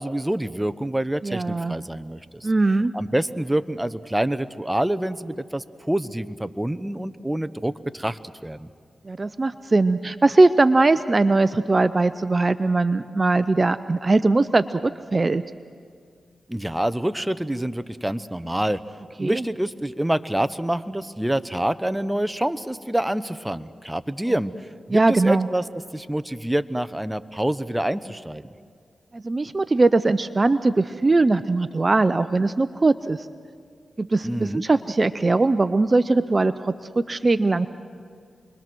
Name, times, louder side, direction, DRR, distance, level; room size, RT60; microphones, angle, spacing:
voice 1, 0.0-2.5 2.9-8.7 16.5-18.8 19.2-24.5 24.9-25.6 25.9-28.5 34.2-34.6, right 1 dB, 10° right, 12 dB, 0.9 m, -26 dB
voice 2, 1.2-1.8 2.4-2.9 9.0-15.4 19.2-19.4 24.9-25.5 29.1-33.2 34.0-37.7, right 3 dB, 40° right, 14 dB, 0.6 m, -20 dB
28.5 x 22.0 x 6.2 m, 2.1 s
cardioid pair, 45°, 0 cm